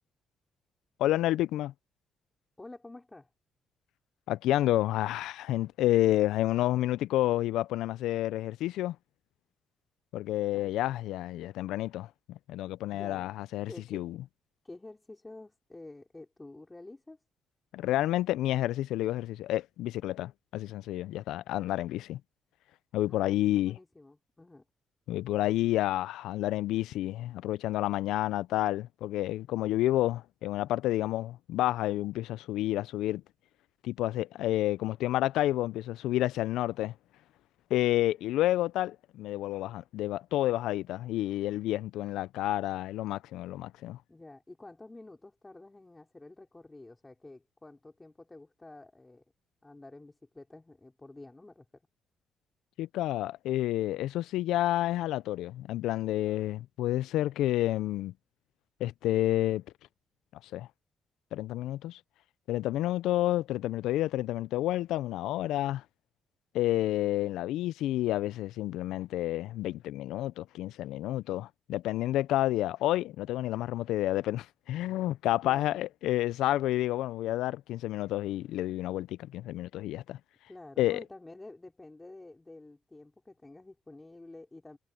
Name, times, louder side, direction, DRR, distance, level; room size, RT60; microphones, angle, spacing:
voice 1, 1.0-1.7 4.3-9.0 10.1-14.2 17.7-22.2 22.9-23.7 25.1-33.2 33.8-36.9 37.7-44.0 52.8-58.1 58.8-59.6 60.5-60.7 61.3-62.0 62.5-65.8 66.5-80.2 80.8-81.0, left 15 dB, 90° left, 0.3 m, -30 dB
voice 2, 2.6-3.3 10.5-10.7 12.9-13.4 13.7-14.0 14.6-17.2 23.0-24.6 44.1-49.2 49.6-51.8 75.5-75.8 80.5-84.8, left 2 dB, 15° left, 5.0 m, -49 dB
cardioid pair, 90°, 0 cm